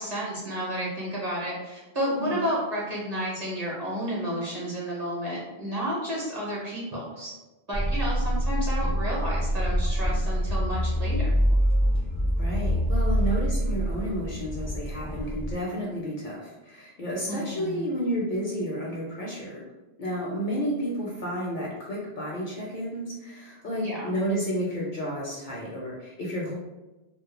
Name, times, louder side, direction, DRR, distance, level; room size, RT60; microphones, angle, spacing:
voice 1, 0.0-7.3 7.7-11.3 17.3-17.8 23.8-24.1, equal, 40° right, -5 dB, 0.7 m, -31 dB
sound 1, 7.7-15.5, equal, 10° left, 0.4 m, -25 dB
voice 2, 12.4-19.6 20.0-26.6, equal, 55° left, -4 dB, 0.6 m, -31 dB
2.1 x 2.0 x 3.0 m, 1.1 s
omnidirectional pair, 1.1 m